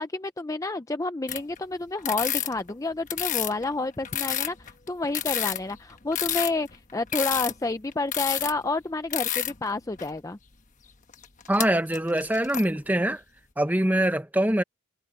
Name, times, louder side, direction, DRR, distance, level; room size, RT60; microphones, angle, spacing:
voice 1, 0.0-10.4, left 2 dB, 15° left, 0.4 m, -30 dB
sound 1, 1.3-1.6 2.0-3.7 4.0-8.6 9.1-9.6 10.0-10.1 11.1-11.7 11.9-12.8, left 10 dB, 35° left, 1.2 m, -29 dB
voice 2, 11.5-13.2 13.6-14.6, right 1 dB, 10° right, 0.8 m, -24 dB
head